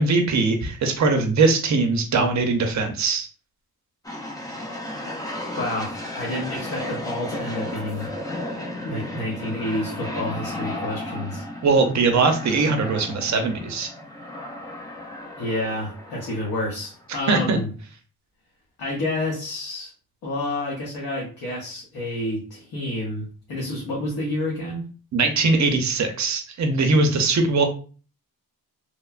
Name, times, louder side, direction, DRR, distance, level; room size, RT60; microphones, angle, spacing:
voice 1, 0.0-3.3 11.6-13.9 17.3-17.6 25.1-27.7, right 3 dB, 50° right, 5 dB, 0.5 m, -21 dB
sound 1, 4.0-17.2, left 1 dB, 10° left, 0.3 m, -34 dB
voice 2, 5.5-8.1 8.8-11.4 15.4-17.7 18.8-19.9 20.2-24.9, left 1 dB, 75° left, -4 dB, 0.9 m, -29 dB
3.0 x 2.1 x 2.3 m, 0.38 s
wide cardioid pair, 165°, 38 cm